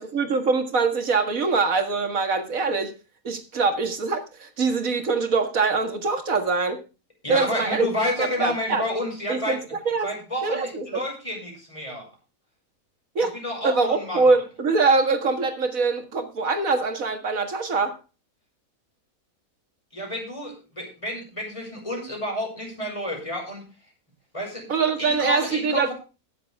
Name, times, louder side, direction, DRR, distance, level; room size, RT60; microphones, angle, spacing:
voice 1, 0.0-2.9 3.2-6.8 7.3-7.9 8.2-8.8 9.3-9.6 9.9-10.1 10.4-11.0 13.2-13.3 13.6-18.0 24.7-25.9, right 4 dB, 60° right, 2.2 m, -23 dB
voice 2, 7.2-9.6 10.0-12.1 13.2-14.4 19.9-23.6 24.3-24.7 25.0-25.9, left 1 dB, 20° left, 6.1 m, -30 dB
20.0 x 7.4 x 3.5 m
omnidirectional pair, 1.6 m